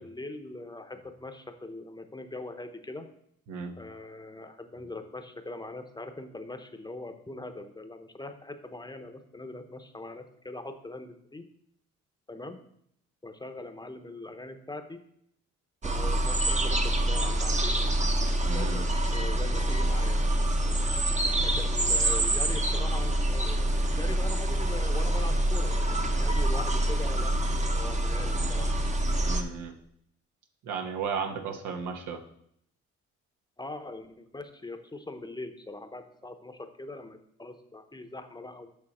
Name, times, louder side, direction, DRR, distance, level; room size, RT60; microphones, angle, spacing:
voice 1, 0.0-3.1 3.8-11.4 12.3-12.6 13.2-15.0 15.8-17.9 18.5-20.3 21.4-28.7 33.6-38.7, left 2 dB, 15° left, 7 dB, 0.9 m, -41 dB
sound 1, 15.8-29.4, right 1 dB, 25° right, 0.9 m, -26 dB
voice 2, 18.4-18.8 29.2-29.7 30.6-32.2, right 5 dB, 85° right, 4 dB, 1.2 m, -34 dB
8.9 x 5.9 x 4.3 m, 0.71 s
cardioid pair, 90°, 30 cm